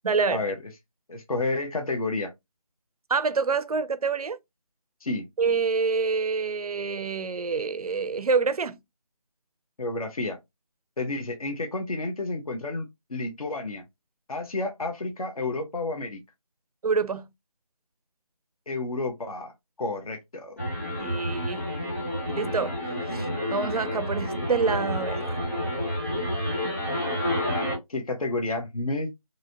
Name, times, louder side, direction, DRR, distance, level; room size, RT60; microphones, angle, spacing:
voice 1, 0.0-0.4 3.1-4.4 5.4-8.8 16.8-17.3 21.0-21.6 22.3-22.8 23.1-25.4, right 5 dB, 75° right, 0.4 m, -26 dB
voice 2, 1.1-2.3 5.0-5.2 9.8-10.4 11.0-13.8 14.3-16.2 18.7-19.5 19.8-20.6 27.9-29.1, left 2 dB, 70° left, 0.7 m, -30 dB
sound 1, 20.6-27.7, equal, 25° left, 1.1 m, -29 dB
3.0 x 2.6 x 2.6 m
figure-of-eight pair, 180°, 19 cm